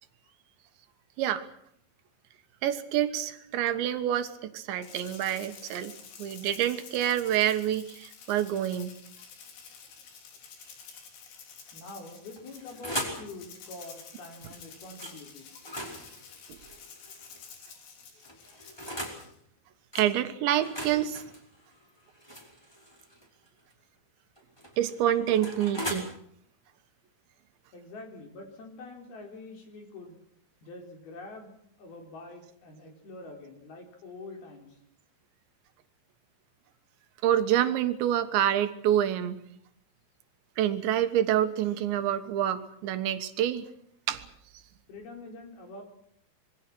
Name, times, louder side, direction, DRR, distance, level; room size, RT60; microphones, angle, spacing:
voice 1, 2.6-5.9 6.2-9.0 20.0-21.2 24.8-26.1 37.2-39.4 40.6-43.7 44.1-44.3, right 11 dB, 80° right, 9 dB, 3.6 m, -27 dB
Rattle (instrument), 4.8-19.4, left 6 dB, 85° left, 5.7 m, -50 dB
voice 2, 11.7-16.3 18.1-18.2 18.5-18.6 27.7-30.2 30.6-31.5 31.8-34.8 44.9-45.8, left 2 dB, 60° left, 3 dB, 6.0 m, -46 dB
sound 1, 12.3-13.3 15.0-15.2 15.6-17.5 18.2-19.2 19.9-20.1 20.6-23.3 24.4-26.0, equal, 5° left, 4.6 m, -39 dB
26.0 x 22.5 x 6.2 m, 0.69 s
omnidirectional pair, 5.1 m